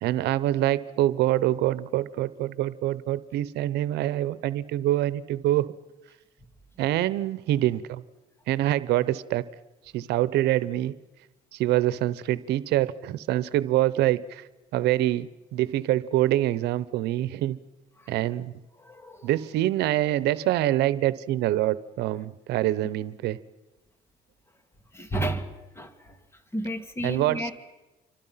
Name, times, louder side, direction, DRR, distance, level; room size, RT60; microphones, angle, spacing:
voice 1, 0.0-5.7 6.8-8.0 8.5-9.4 9.9-10.9 11.5-14.4 14.7-17.6 18.1-18.5 19.2-23.4 27.0-27.5, right 14 dB, 85° right, 0.9 m, -25 dB
voice 2, 18.8-19.3 24.9-26.2 26.5-27.5, right 1 dB, 15° left, 2.7 m, -32 dB
27.5 x 25.0 x 5.8 m
cardioid pair, 110°, 17 cm